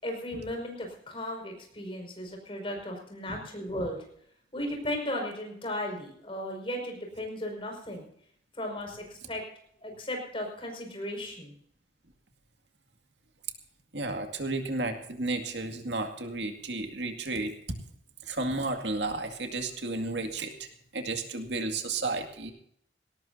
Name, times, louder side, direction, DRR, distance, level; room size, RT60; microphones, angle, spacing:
voice 1, 0.0-4.0 4.5-8.1 8.5-9.4 9.8-11.5, left 1 dB, 30° left, 2 dB, 5.5 m, -36 dB
voice 2, 13.9-17.5 18.3-20.7 20.9-22.5, right 2 dB, 80° right, 5 dB, 2.1 m, -32 dB
19.0 x 18.0 x 2.7 m, 0.66 s
head